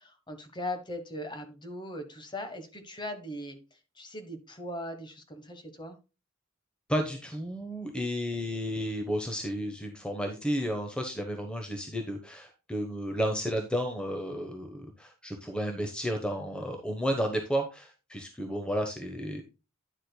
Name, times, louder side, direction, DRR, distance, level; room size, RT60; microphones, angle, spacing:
voice 1, 0.0-6.0, left 1 dB, 20° left, 7 dB, 1.2 m, -39 dB
voice 2, 6.9-19.4, equal, 5° left, 4 dB, 1.0 m, -32 dB
9.8 x 7.4 x 2.2 m, 0.29 s
head